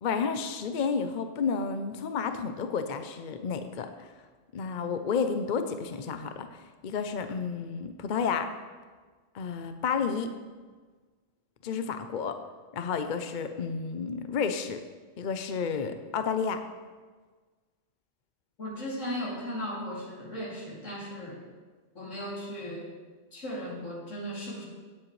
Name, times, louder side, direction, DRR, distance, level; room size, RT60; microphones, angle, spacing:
voice 1, 0.0-3.9 4.5-8.5 9.3-10.3 11.6-12.4 12.7-14.8 15.2-16.6, left 6 dB, 50° left, 7 dB, 0.7 m, -31 dB
voice 2, 18.6-21.4 21.9-22.9 23.3-24.6, equal, 85° left, -5 dB, 3.1 m, -36 dB
17.0 x 7.6 x 3.2 m, 1.4 s
omnidirectional pair, 1.3 m